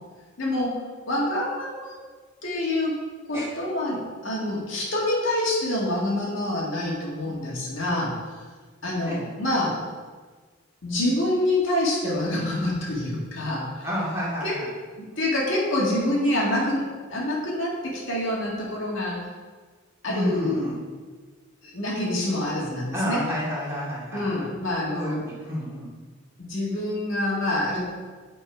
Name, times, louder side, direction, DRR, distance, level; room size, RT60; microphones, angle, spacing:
voice 1, 0.4-0.8 1.1-1.9 2.4-3.0 3.3-8.1 8.8-9.8 10.8-13.9 14.4-14.6 15.0-19.2 20.0-20.7 21.6-23.3 24.1-25.2 26.4-27.8, left 1 dB, 75° left, -5 dB, 2.0 m, -26 dB
voice 2, 13.8-14.7 20.1-20.7 22.9-24.5 24.9-25.9, equal, 15° right, -7 dB, 2.3 m, -30 dB
9.0 x 4.5 x 5.0 m, 1.4 s
head